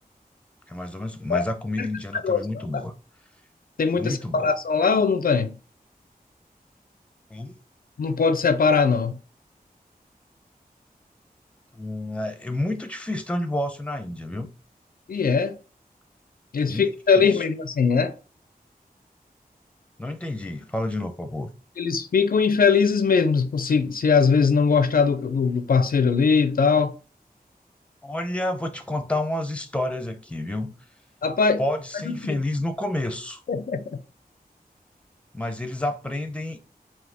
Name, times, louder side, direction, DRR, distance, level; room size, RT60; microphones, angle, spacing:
voice 1, 0.7-2.9 3.9-4.5 7.3-7.6 11.7-14.5 16.7-16.8 17.1-17.4 20.0-21.5 28.0-30.7 31.6-33.4 35.3-36.6, left 1 dB, 5° left, 0.6 m, -29 dB
voice 2, 3.8-5.5 8.0-9.2 15.1-15.6 16.5-18.1 21.8-26.9 31.2-31.6 32.1-32.4 33.5-34.0, left 5 dB, 70° left, 0.4 m, -21 dB
4.1 x 2.6 x 3.4 m
wide cardioid pair, 85°, 16 cm